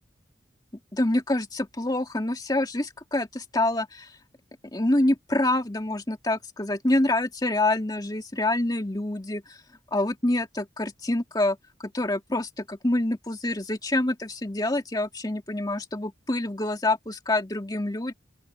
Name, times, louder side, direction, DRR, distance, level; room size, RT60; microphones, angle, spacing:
voice 1, 0.9-4.1 4.7-9.6 9.9-18.1, left 1 dB, 20° left, 2.3 m, -26 dB
open air
head